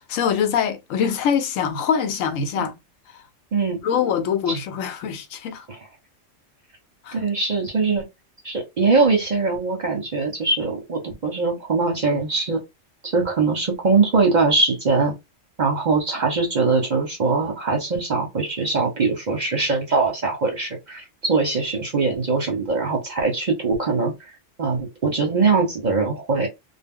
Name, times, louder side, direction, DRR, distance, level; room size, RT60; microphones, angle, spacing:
voice 1, 0.1-2.7 3.8-5.7 7.0-7.2, left 7 dB, 80° left, 1.0 m, -23 dB
voice 2, 7.1-8.0 8.4-12.6 13.0-15.1 15.6-24.1 24.6-26.5, right 4 dB, 45° right, 0.7 m, -22 dB
2.3 x 2.1 x 3.5 m
omnidirectional pair, 1.3 m